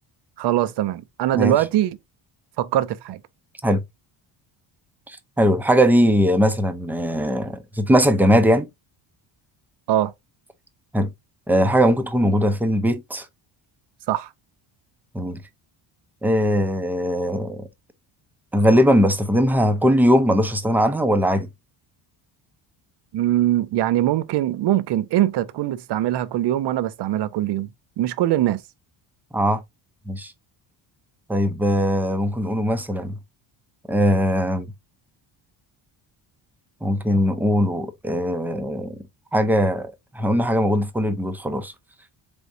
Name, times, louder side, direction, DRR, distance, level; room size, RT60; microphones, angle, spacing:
voice 1, 0.4-2.0 2.6-3.2 9.9-10.1 14.1-14.3 23.1-27.7 28.0-28.6, right 13 dB, 55° right, 0.6 m, -22 dB
voice 2, 5.1-8.7 10.9-11.1 11.5-13.3 15.1-15.4 16.2-17.7 18.5-21.5 29.3-29.6 30.1-30.3 31.3-33.2 33.9-34.7 36.8-39.0 39.3-41.7, equal, 5° right, 0.4 m, -20 dB
3.9 x 3.5 x 2.5 m
cardioid pair, 110°, 50 cm